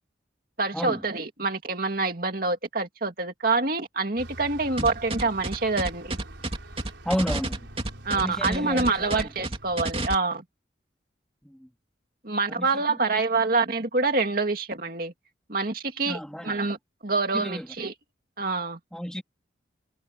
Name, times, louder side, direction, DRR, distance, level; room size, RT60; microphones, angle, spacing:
voice 1, 0.6-6.2 8.0-10.4 12.2-15.1 15.5-16.8 17.0-17.9 18.4-18.8, right 3 dB, 50° right, 2.4 m, -26 dB
Bus, 4.2-10.1, right 1 dB, 80° right, 4.5 m, -45 dB
sound 1, 4.8-10.1, right 2 dB, 30° right, 3.2 m, -30 dB
voice 2, 7.0-7.7 8.1-9.3 11.4-11.7 12.6-12.7 16.1-16.5 17.3-17.7 18.9-19.2, equal, 5° left, 3.0 m, -31 dB
head